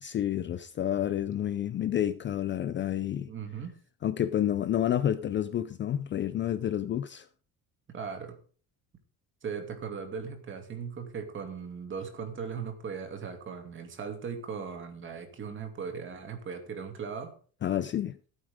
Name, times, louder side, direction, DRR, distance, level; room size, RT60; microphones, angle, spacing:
voice 1, 0.0-3.3 4.0-7.3 17.6-18.2, left 11 dB, 30° left, 0.5 m, -29 dB
voice 2, 3.3-3.8 7.9-8.4 9.4-17.3, right 6 dB, 30° right, 2.6 m, -38 dB
15.5 x 8.9 x 3.6 m
cardioid pair, 150°, 37 cm